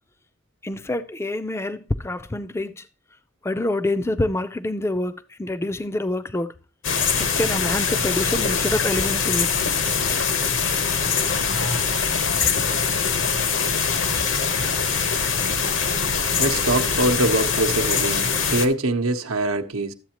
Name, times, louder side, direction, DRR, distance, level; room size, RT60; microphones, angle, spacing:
voice 1, 0.6-2.8 3.4-6.5 7.2-9.5, left 1 dB, 10° left, 0.4 m, -26 dB
sound 1, 6.8-18.7, left 6 dB, 65° left, 0.9 m, -23 dB
voice 2, 16.4-19.9, right 2 dB, 85° right, 0.8 m, -23 dB
12.5 x 7.9 x 2.9 m
head